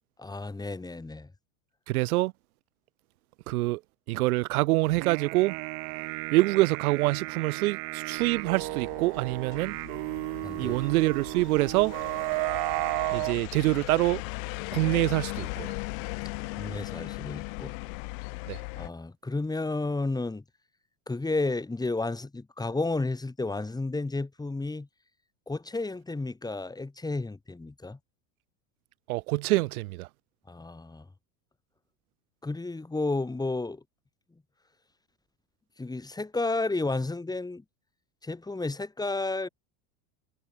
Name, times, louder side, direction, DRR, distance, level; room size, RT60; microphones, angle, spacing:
voice 1, 0.2-1.3 10.4-10.8 16.5-17.7 18.8-20.4 21.1-24.9 25.5-28.0 30.5-31.1 32.4-33.8 35.8-37.6 38.2-39.5, left 3 dB, 10° left, 2.5 m, -32 dB
voice 2, 1.9-2.3 3.5-3.8 4.1-5.6 6.3-9.8 10.6-12.0 13.1-14.2 14.7-15.8 18.5-18.6 29.1-30.1, right 19 dB, 80° right, 2.1 m, -25 dB
sound 1, 4.9-13.4, right 32 dB, 65° right, 4.0 m, -33 dB
sound 2, 8.2-18.9, left 32 dB, 70° left, 5.6 m, -38 dB
supercardioid pair, 115°, 43 cm